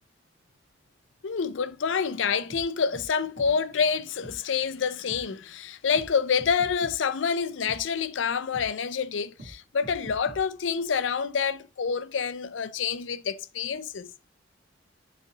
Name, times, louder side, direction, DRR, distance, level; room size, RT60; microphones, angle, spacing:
voice 1, 1.2-14.1, left 6 dB, 90° left, 0.5 m, -27 dB
sound 1, 2.5-2.6 2.9-3.1 3.4-3.5 4.2-4.4 5.1-5.2 5.9-6.1 6.4-6.9 7.7-7.8 8.5-8.7 9.4-9.5 9.8-10.4, right 1 dB, 65° right, 2.1 m, -43 dB
8.3 x 4.1 x 2.9 m
head